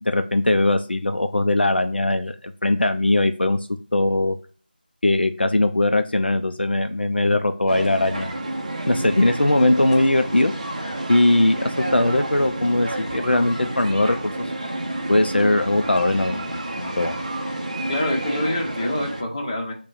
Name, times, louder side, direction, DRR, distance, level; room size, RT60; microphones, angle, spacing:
voice 1, 0.0-3.6 3.9-4.4 5.0-8.4 8.9-10.5 11.1-14.5 15.1-17.2, left 2 dB, 85° left, 8 dB, 0.4 m, -20 dB
sound 1, 7.7-19.2, right 1 dB, 40° right, 0.6 m, -30 dB
voice 2, 17.9-19.7, left 1 dB, 30° left, -1 dB, 0.9 m, -26 dB
5.8 x 2.2 x 2.5 m, 0.41 s
figure-of-eight pair, 170°, 5 cm